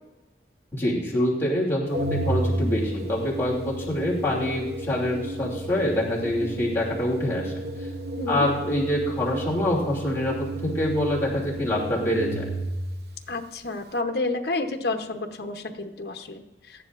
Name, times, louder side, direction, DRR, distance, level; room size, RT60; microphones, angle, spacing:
voice 1, 0.7-7.5 7.8-7.9 8.3-12.5, left 1 dB, 15° left, -5 dB, 2.7 m, -25 dB
Organ, 1.9-12.9, right 1 dB, 65° right, 0.9 m, -32 dB
voice 2, 13.3-16.9, left 2 dB, 65° left, 5 dB, 0.9 m, -30 dB
19.0 x 14.0 x 2.5 m, 1.1 s
head